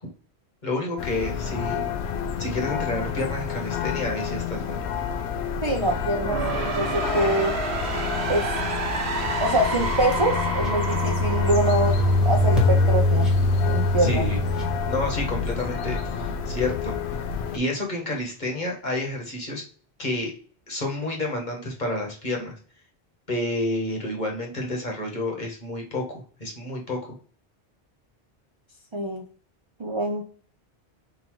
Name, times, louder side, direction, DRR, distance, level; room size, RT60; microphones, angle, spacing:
voice 1, 0.6-1.8 2.4-4.8 14.0-14.4 14.9-16.9 17.5-19.6 20.0-20.3 20.7-22.5 23.3-27.0, left 2 dB, 45° left, 0 dB, 1.3 m, -29 dB
sound 1, 1.0-17.6, left 7 dB, 85° left, 0.9 m, -30 dB
voice 2, 5.6-7.6 8.3-8.4 9.4-11.9 12.2-13.3 13.6-14.3 28.9-29.2 29.8-30.2, right 1 dB, 35° right, 1 dB, 0.5 m, -25 dB
sound 2, 6.0-12.9, right 3 dB, 85° right, 1.2 m, -30 dB
sound 3, 9.9-15.6, left 1 dB, ahead, 1.3 m, -23 dB
3.9 x 2.7 x 4.5 m, 0.43 s
omnidirectional pair, 1.1 m